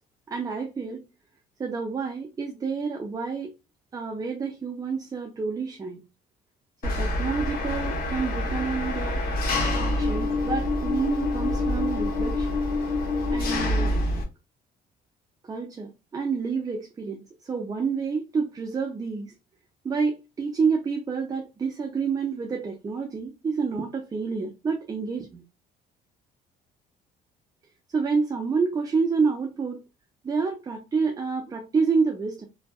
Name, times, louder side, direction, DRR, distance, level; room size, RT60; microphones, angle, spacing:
voice 1, 0.3-1.0 1.6-3.5 3.9-6.0 6.8-9.3 9.8-12.6 13.3-14.0 15.5-19.3 19.8-25.4 27.9-29.8 30.2-32.5, right 5 dB, 20° right, 0.4 m, -28 dB
Engine, 6.8-14.2, left 2 dB, 60° left, 0.9 m, -26 dB
2.6 x 2.2 x 2.2 m
cardioid pair, 110°, 17 cm